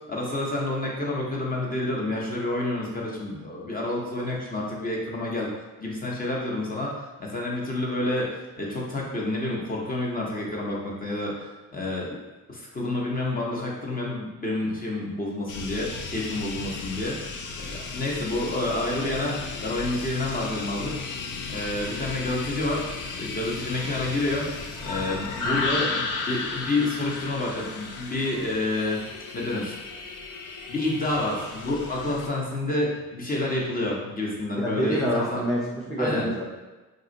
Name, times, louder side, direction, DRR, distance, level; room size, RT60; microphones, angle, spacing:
voice 1, 0.1-5.5 5.8-12.2 12.5-17.4 17.7-20.9 21.5-22.9 23.2-24.5 24.8-29.0 29.3-29.8 30.7-35.4 36.0-36.3, left 2 dB, 25° left, -3 dB, 0.8 m, -29 dB
sound 1, 15.5-32.3, left 4 dB, 70° left, 0.5 m, -34 dB
voice 2, 34.6-36.4, equal, ahead, -6 dB, 0.6 m, -27 dB
2.5 x 2.3 x 3.9 m, 1.2 s
cardioid pair, 85°, 32 cm